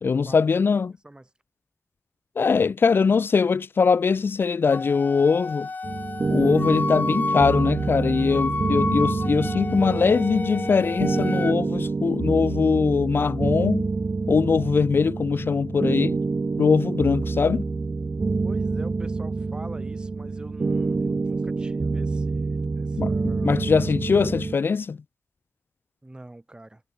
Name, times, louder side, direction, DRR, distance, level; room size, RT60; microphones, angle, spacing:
voice 1, 0.0-0.9 2.4-5.7 6.3-13.9 14.3-16.2 16.6-17.6 23.0-23.1 23.4-25.0, left 5 dB, 70° left, 0.4 m, -21 dB
Wind instrument woodwind instrument, 4.7-11.5, left 3 dB, 50° left, 0.7 m, -31 dB
sound 1, 5.8-24.5, right 4 dB, 55° right, 1.7 m, -27 dB
voice 2, 18.4-23.5 26.0-26.8, right 1 dB, 20° right, 7.8 m, -44 dB
wide cardioid pair, 70°, 4 cm